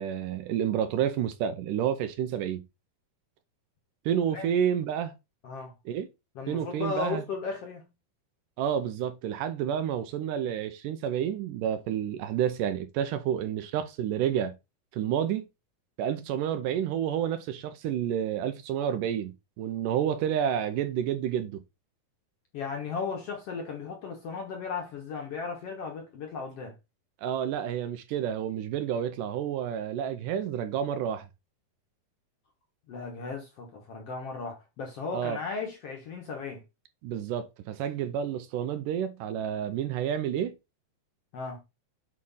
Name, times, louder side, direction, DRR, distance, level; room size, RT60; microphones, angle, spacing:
voice 1, 0.0-2.6 4.1-5.1 5.9-6.1 6.5-7.2 8.6-14.5 14.9-15.5 16.0-21.6 27.2-31.3 35.1-35.4 37.0-40.5, right 9 dB, 80° right, 2.1 m, -29 dB
voice 2, 6.3-7.9 22.5-26.7 32.9-36.6 41.3-41.6, left 5 dB, 60° left, 1.7 m, -36 dB
8.6 x 3.1 x 5.5 m
omnidirectional pair, 4.1 m